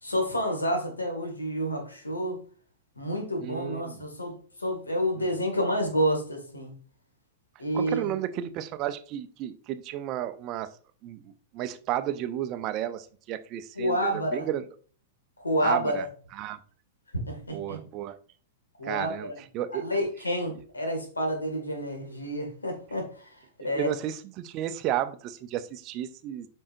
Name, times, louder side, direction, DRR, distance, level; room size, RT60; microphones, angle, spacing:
voice 1, 0.0-2.4 3.0-6.7 7.6-8.1 13.8-14.5 15.4-16.1 17.1-17.8 18.8-19.4 19.7-23.3 23.6-23.9, equal, 85° left, 3 dB, 2.1 m, -29 dB
voice 2, 3.4-4.0 7.7-10.7 11.0-14.6 15.6-16.1 16.3-16.6 17.5-18.2 18.8-19.8 23.7-26.5, right 12 dB, 40° right, 11 dB, 0.6 m, -33 dB
8.5 x 5.5 x 2.6 m, 0.43 s
figure-of-eight pair, 100°, 0 cm